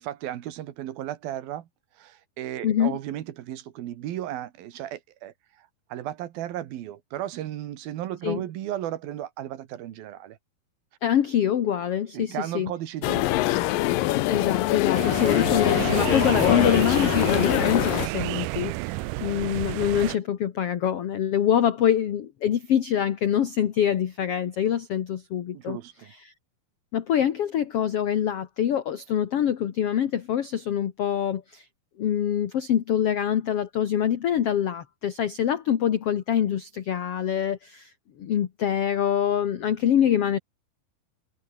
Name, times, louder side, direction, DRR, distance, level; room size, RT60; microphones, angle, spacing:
voice 1, 0.0-1.7 1.9-10.4 12.1-13.3 16.3-16.4 19.2-19.5 25.5-26.1, right 12 dB, 75° right, 3.2 m, -35 dB
voice 2, 11.0-12.7 14.3-25.8 26.2-26.3 26.9-31.6 32.0-37.9 38.2-40.4, left 9 dB, 55° left, 1.7 m, -25 dB
sound 1, 13.0-18.1, left 16 dB, 75° left, 2.4 m, -23 dB
sound 2, 14.9-20.2, right 20 dB, 90° right, 1.8 m, -30 dB
omnidirectional pair, 4.4 m